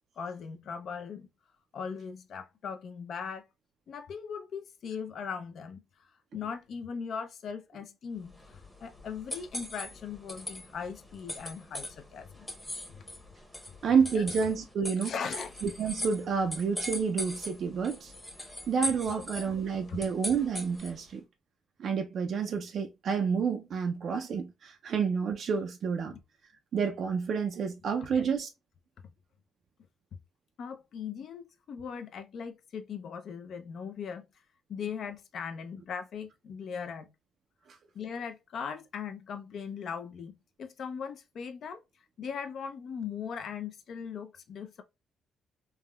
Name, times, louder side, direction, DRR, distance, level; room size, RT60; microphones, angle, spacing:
voice 1, 0.2-1.3 1.7-3.4 3.9-5.8 6.3-12.5 12.9-13.0 14.1-14.3 15.0-15.5 19.1-19.5 19.9-20.0 26.1-26.2 28.1-28.2 30.6-34.2 34.7-37.1 37.9-41.8 42.2-44.8, left 6 dB, 65° left, 0.5 m, -39 dB
sound 1, 8.2-21.1, left 1 dB, 10° left, 0.8 m, -41 dB
voice 2, 13.8-15.1 15.6-18.1 18.7-21.2 21.8-26.1 26.7-28.5, right 6 dB, 60° right, 0.3 m, -29 dB
3.4 x 2.1 x 2.2 m
cardioid pair, 90°, 0 cm